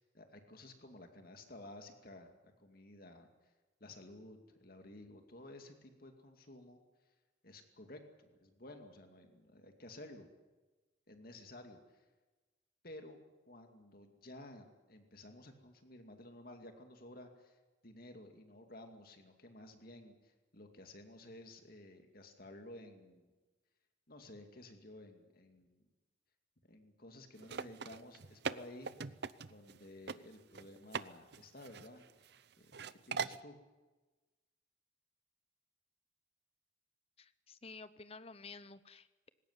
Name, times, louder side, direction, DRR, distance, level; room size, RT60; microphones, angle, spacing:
voice 1, 0.0-3.5 3.8-6.8 7.4-10.3 11.1-12.1 12.8-13.2 13.5-23.3 24.1-25.8 26.6-28.9 29.5-32.3 32.6-32.7 33.1-33.6, left 1 dB, 45° left, 5 dB, 2.3 m, -54 dB
sound 1, 27.4-29.8 30.1-30.2 30.5-31.1 31.3-32.4 32.7-33.4, right 5 dB, 55° right, 0.6 m, -41 dB
voice 2, 37.2-39.3, left 4 dB, 30° left, 14 dB, 0.8 m, -52 dB
20.0 x 17.5 x 9.7 m, 1.2 s
head